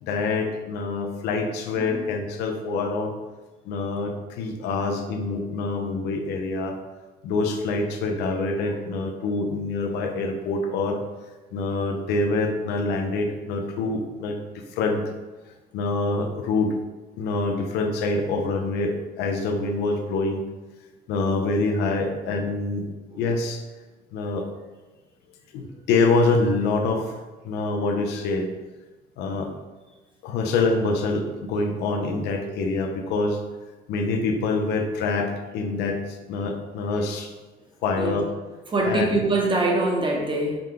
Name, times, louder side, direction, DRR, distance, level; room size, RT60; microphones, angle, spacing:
voice 1, 0.0-3.2 3.7-6.8 7.2-11.0 11.5-15.1 15.7-16.8 17.2-20.4 21.1-22.9 23.2-23.6 24.1-24.5 25.5-28.5 29.2-29.5 30.2-33.4 33.9-37.3 37.8-38.3 38.9-39.1, left 3 dB, 85° left, 4 dB, 0.6 m, -25 dB
voice 2, 38.7-40.6, right 2 dB, 30° right, 0 dB, 0.9 m, -24 dB
4.9 x 2.2 x 3.7 m, 1.2 s
cardioid pair, 110°, 17 cm